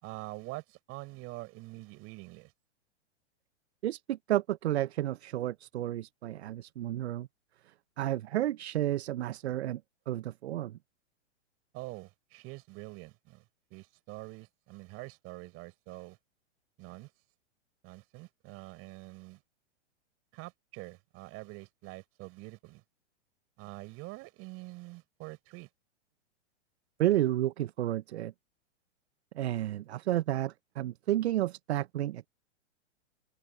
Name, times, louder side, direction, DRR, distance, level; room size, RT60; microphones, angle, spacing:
voice 1, 0.0-2.5 11.7-16.2 16.8-17.1 17.8-19.4 20.3-22.8 23.6-25.7, right 23 dB, 40° right, 4.9 m, -45 dB
voice 2, 3.8-7.3 8.0-9.8 10.1-10.8 27.0-28.3 29.3-32.3, right 13 dB, 65° right, 0.8 m, -31 dB
open air
hypercardioid pair, 115°, 35 cm